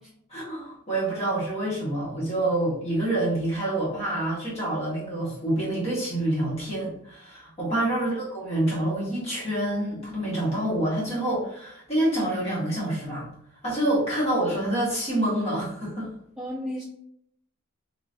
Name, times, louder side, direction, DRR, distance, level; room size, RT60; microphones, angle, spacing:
voice 1, 0.3-13.3 13.6-16.1, right 1 dB, 30° left, -7 dB, 1.4 m, -27 dB
voice 2, 16.4-16.8, equal, 5° right, -8 dB, 0.5 m, -33 dB
3.2 x 2.9 x 2.6 m, 0.72 s
head